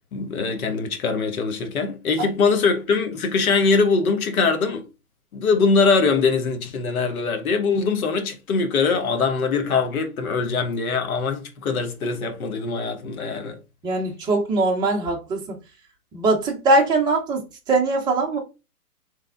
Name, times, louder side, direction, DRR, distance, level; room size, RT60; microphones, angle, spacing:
voice 1, 0.1-4.8 5.3-13.6, left 4 dB, 65° left, 1.3 m, -22 dB
voice 2, 13.8-15.6 16.1-18.4, right 2 dB, 10° right, 0.6 m, -21 dB
3.4 x 3.4 x 3.5 m
hypercardioid pair, 130°, 46 cm